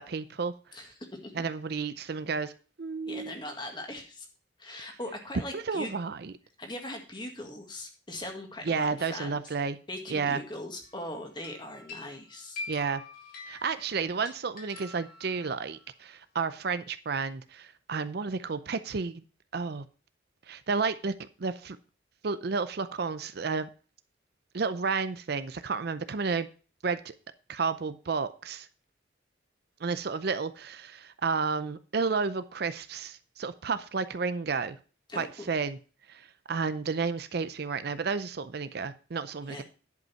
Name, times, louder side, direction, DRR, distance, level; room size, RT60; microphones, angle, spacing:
voice 1, 0.0-0.5 1.3-2.5 2.8-3.4 5.5-6.3 8.6-9.8 10.1-10.4 12.7-13.0 13.5-19.2 19.5-19.9 20.5-21.8 22.2-23.7 24.5-26.5 26.8-27.1 27.5-28.7 29.8-34.8 35.2-35.8 36.1-39.6, right 5 dB, 55° right, 13 dB, 0.5 m, -31 dB
voice 2, 0.7-1.3 3.0-4.3 4.6-5.9 6.6-9.5 9.9-12.6 35.1-35.5 39.5-39.6, left 1 dB, 25° left, 3 dB, 1.8 m, -40 dB
sound 1, 10.8-11.1 11.4-15.8, left 3 dB, 50° left, 2.6 m, -45 dB
10.5 x 5.4 x 5.6 m, 0.37 s
head